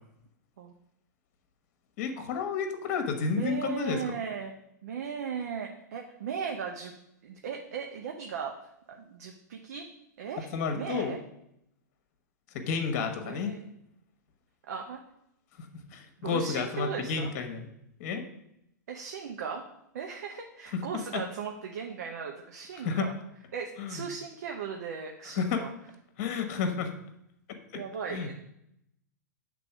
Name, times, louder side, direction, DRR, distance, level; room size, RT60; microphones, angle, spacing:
voice 1, 2.0-4.1 10.5-11.1 12.5-13.5 15.9-17.7 18.0-18.2 20.7-20.8 21.1-21.2 22.8-23.1 23.8-24.0 25.3-25.7 26.2-26.9 28.1-28.3, left 5 dB, 45° left, 6 dB, 1.2 m, -31 dB
voice 2, 3.3-4.5 4.8-6.9 7.2-8.5 8.9-9.9 10.2-11.2 13.2-13.7 14.7-15.0 16.2-17.3 18.9-19.6 19.9-23.1 23.5-25.7 26.3-26.4 27.7-28.3, right 6 dB, 60° right, 2 dB, 0.8 m, -37 dB
7.5 x 3.8 x 6.0 m, 0.78 s
figure-of-eight pair, 105°, 10 cm